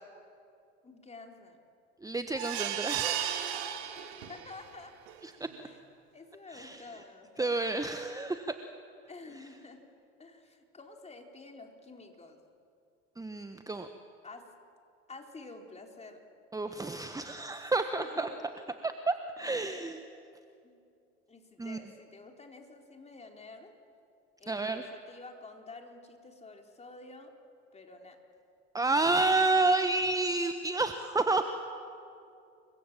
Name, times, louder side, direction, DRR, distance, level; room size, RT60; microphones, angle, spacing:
voice 1, 0.8-1.6 4.0-4.9 5.6-5.8 6.1-7.5 9.1-9.8 10.2-12.4 14.2-14.4 15.1-16.2 17.8-18.3 20.6-20.8 21.3-23.8 24.4-27.3 27.7-28.2, left 3 dB, 20° left, 3 dB, 4.1 m, -49 dB
voice 2, 2.0-3.3 5.2-5.5 6.5-6.8 7.4-8.5 13.2-13.9 16.5-18.3 18.8-20.0 21.6-21.8 24.5-24.9 28.7-31.4, right 3 dB, 10° right, 8 dB, 1.4 m, -30 dB
sound 1, 2.3-4.6 5.1-5.2 5.5-5.6, right 10 dB, 70° right, 2.5 m, -34 dB
29.0 x 24.0 x 7.6 m, 2.5 s
hypercardioid pair, 70°, 34 cm